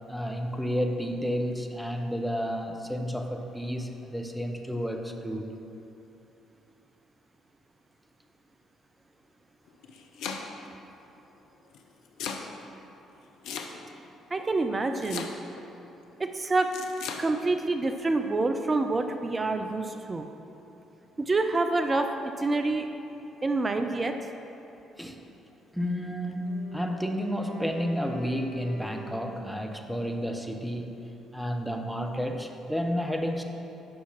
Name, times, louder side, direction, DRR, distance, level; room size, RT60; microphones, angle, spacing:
voice 1, 0.1-5.5 25.0-25.2 25.7-31.1 31.3-33.4, equal, ahead, 3 dB, 0.9 m, -31 dB
Domestic sounds home sounds, 9.7-10.7 11.7-12.5 13.4-14.1 15.0-15.6 16.7-17.2, left 6 dB, 65° left, 0.6 m, -36 dB
voice 2, 14.3-15.3 16.2-16.7 17.2-20.3 21.2-22.1 22.4-22.9 23.4-24.1, right 3 dB, 30° right, 6 dB, 0.5 m, -27 dB
Wind instrument woodwind instrument, 26.3-29.8, left 1 dB, 80° left, 1.2 m, -45 dB
8.6 x 5.8 x 5.9 m, 2.9 s
figure-of-eight pair, 45°, 0 cm